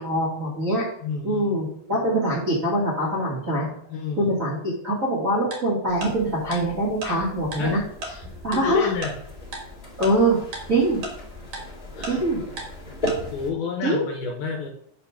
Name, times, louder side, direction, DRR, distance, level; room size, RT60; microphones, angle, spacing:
voice 1, 0.0-0.9 1.2-3.7 4.2-7.8 8.4-8.9 10.0-10.4 10.7-11.0 12.0-12.4 13.8-14.1, right 1 dB, 80° right, -7 dB, 0.7 m, -23 dB
voice 2, 1.0-1.5 3.9-4.3 7.6-7.8 8.5-9.1 11.9-12.2 13.3-14.7, left 5 dB, 75° left, 2 dB, 2.3 m, -30 dB
Tick-tock, 5.5-5.6 6.0-6.1 6.5-6.6 7.0-7.1 7.5-7.6 8.0-8.1 8.5-8.6 9.0-9.1 9.5-9.6 10.0-10.1 10.5-10.6 11.0-11.1 11.5-11.6 12.0-12.1 12.6-12.7 13.1-13.2, right 2 dB, 55° right, 1.8 m, -32 dB
sound 1, 5.9-13.5, equal, 30° left, 0.8 m, -37 dB
9.3 x 3.6 x 5.7 m, 0.67 s
omnidirectional pair, 5.2 m